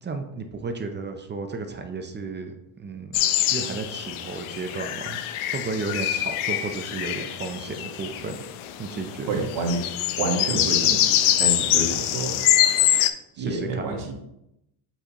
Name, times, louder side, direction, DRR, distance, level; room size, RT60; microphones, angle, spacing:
voice 1, 0.0-3.2 3.5-8.5 8.8-9.3 13.3-14.0, right 4 dB, 25° right, 6 dB, 0.5 m, -33 dB
sound 1, 3.1-13.1, left 12 dB, 80° left, 0.7 m, -24 dB
voice 2, 9.3-9.8 10.2-12.3 13.4-14.1, right 3 dB, 65° right, 1 dB, 1.7 m, -28 dB
7.9 x 4.3 x 2.9 m, 0.82 s
cardioid pair, 135°, 48 cm